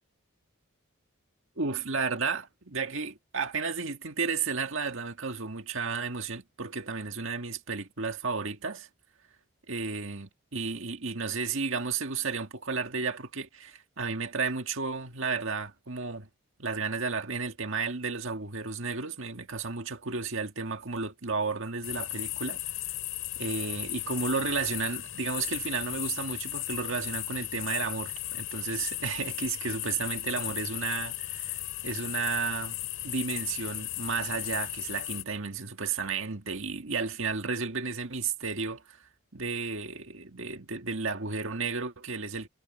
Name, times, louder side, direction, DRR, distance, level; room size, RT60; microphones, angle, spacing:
voice 1, 1.6-8.9 9.7-16.3 16.6-22.6 23.4-32.8 33.0-39.0 39.3-42.5, right 4 dB, 65° right, 1.9 m, -33 dB
sound 1, 21.8-35.2, left 14 dB, 70° left, 8.0 m, -36 dB
head